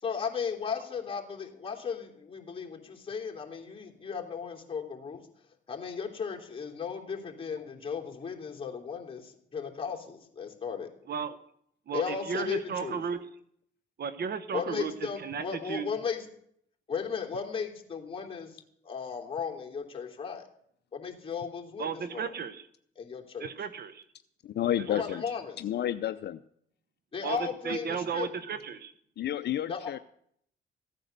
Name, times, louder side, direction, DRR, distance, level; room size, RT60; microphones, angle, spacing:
voice 1, 0.0-5.3 5.7-10.9 11.9-13.0 14.5-16.2 16.9-18.6 18.8-20.4 20.9-22.3 23.0-23.5 24.9-25.6 27.1-28.3 29.7-30.0, left 6 dB, 25° left, 0 dB, 3.1 m, -36 dB
voice 2, 11.9-13.3 14.0-15.9 21.8-22.7 23.4-24.0 24.9-25.0 27.2-28.9, right 6 dB, 55° right, 13 dB, 1.0 m, -34 dB
voice 3, 24.4-25.2 25.6-26.4 29.2-30.0, left 11 dB, 60° left, 12 dB, 0.6 m, -30 dB
15.5 x 9.1 x 6.6 m, 0.67 s
cardioid pair, 90°, 20 cm